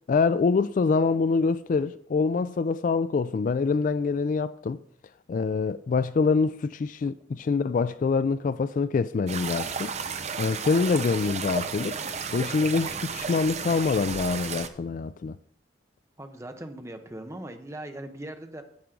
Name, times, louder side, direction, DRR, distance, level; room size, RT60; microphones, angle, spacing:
voice 1, 0.1-4.8 5.3-9.9 10.4-12.0 12.3-15.4, left 4 dB, 45° left, 0.3 m, -25 dB
sound 1, 9.3-14.7, right 6 dB, 40° right, 0.7 m, -33 dB
voice 2, 16.2-18.6, right 1 dB, 15° right, 0.9 m, -39 dB
10.5 x 8.2 x 3.8 m
head